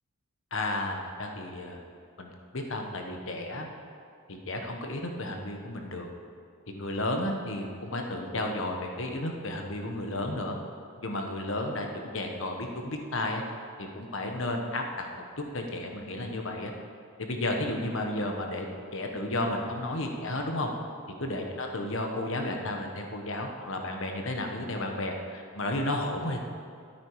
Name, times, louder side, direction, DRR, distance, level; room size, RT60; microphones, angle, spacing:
voice 1, 0.5-1.8 2.2-3.7 4.3-6.1 6.7-10.6 11.0-13.4 13.8-15.1 15.4-16.7 17.2-18.7 18.9-20.7 21.2-26.4, left 1 dB, 60° left, 3 dB, 1.2 m, -32 dB
13.0 x 8.8 x 4.9 m, 2.3 s
head